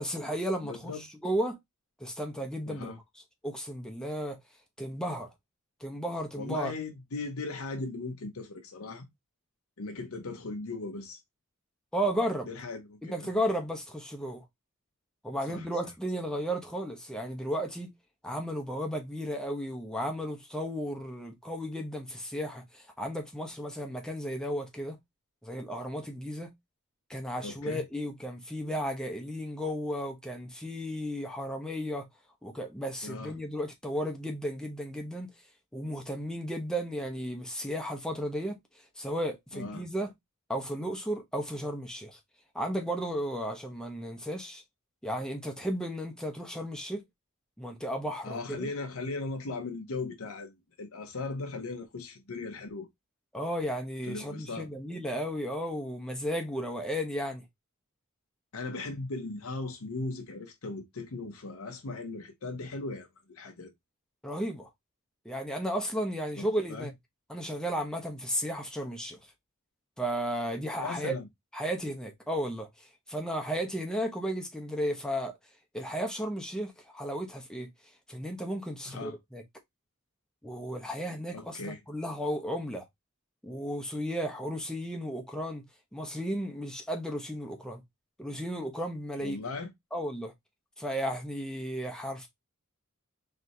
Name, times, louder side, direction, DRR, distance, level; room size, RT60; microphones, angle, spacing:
voice 1, 0.0-1.6 2.0-3.0 3.4-4.4 4.8-5.3 5.8-6.7 11.9-12.5 13.0-14.4 15.2-17.9 18.2-25.0 25.4-26.5 27.1-32.1 32.4-35.3 35.7-38.6 39.0-40.1 40.5-42.2 42.5-44.6 45.0-47.0 47.6-48.7 53.3-57.4 64.2-64.7 65.2-66.9 67.3-69.2 70.0-71.1 71.5-75.4 75.7-77.7 78.1-79.4 80.4-82.8 83.4-85.6 85.9-87.8 88.2-89.4 89.9-90.3 90.8-92.3, equal, 5° left, 0.9 m, -34 dB
voice 2, 0.6-1.0 2.7-3.0 6.4-9.1 9.8-11.2 12.5-13.3 15.5-15.9 27.4-27.8 33.0-33.4 39.5-39.8 48.2-52.9 54.1-54.7 58.5-63.7 66.4-66.9 70.8-71.3 78.9-79.2 81.3-81.8 89.2-89.7, left 3 dB, 75° left, 0.8 m, -38 dB
4.2 x 3.3 x 2.9 m
head